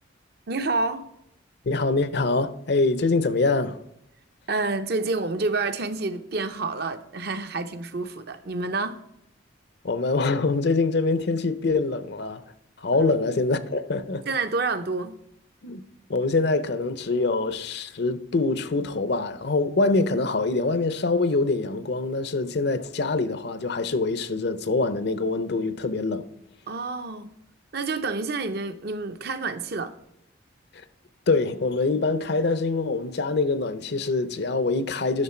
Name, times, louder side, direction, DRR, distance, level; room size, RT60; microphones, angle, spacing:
voice 1, 0.5-1.1 4.5-9.0 14.3-15.2 26.7-27.3 27.7-29.9, right 3 dB, 55° right, 0.7 m, -28 dB
voice 2, 1.7-3.8 9.8-12.4 12.8-14.2 15.6-15.8 16.1-26.3 31.3-35.2, left 3 dB, 55° left, 0.6 m, -24 dB
11.0 x 6.4 x 4.4 m
head